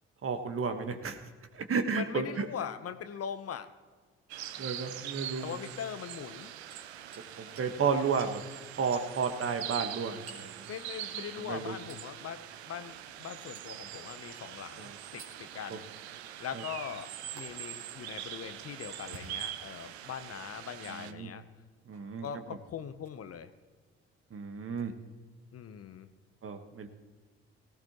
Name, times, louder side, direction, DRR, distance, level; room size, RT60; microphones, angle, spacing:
voice 1, 0.2-1.2 1.5-2.5 4.6-5.6 7.4-8.4 8.8-10.7 11.4-11.7 14.8-15.0 15.7-15.8 16.5-16.6 20.9-21.3 21.9-22.3 24.3-24.9 26.4-26.9, right 5 dB, 45° right, 7 dB, 1.5 m, -32 dB
voice 2, 2.0-3.7 5.4-6.5 10.7-15.8 16.4-17.1 17.3-21.4 22.2-23.5 25.5-26.1, left 8 dB, 50° left, 11 dB, 0.9 m, -41 dB
sound 1, 4.3-21.1, right 11 dB, 85° right, 0.6 m, -43 dB
Hammer, 6.7-7.3 7.6-7.7 8.2-8.4 8.9-9.1 10.3-10.5 11.9-12.1 13.5-13.8 15.2-15.4 17.4-17.5 19.0-19.8 20.5-20.6 21.9-22.1 23.0-23.2 24.7-24.8, right 3 dB, 65° right, 3.1 m, -51 dB
18.0 x 15.0 x 3.1 m, 1.5 s
hypercardioid pair, 45°, 32 cm